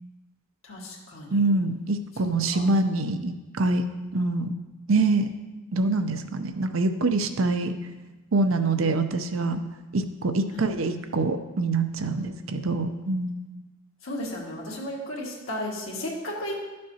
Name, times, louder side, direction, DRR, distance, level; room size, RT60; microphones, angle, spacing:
voice 1, 0.6-1.4 2.2-2.7 8.6-9.0 10.5-10.7 12.2-12.6 14.0-16.6, left 1 dB, 75° left, -3 dB, 1.9 m, -35 dB
voice 2, 1.3-3.8 4.1-4.5 4.9-5.3 5.7-7.7 8.3-9.6 9.9-13.4, right 3 dB, 70° right, 8 dB, 0.6 m, -25 dB
12.0 x 6.4 x 2.8 m, 1.2 s
head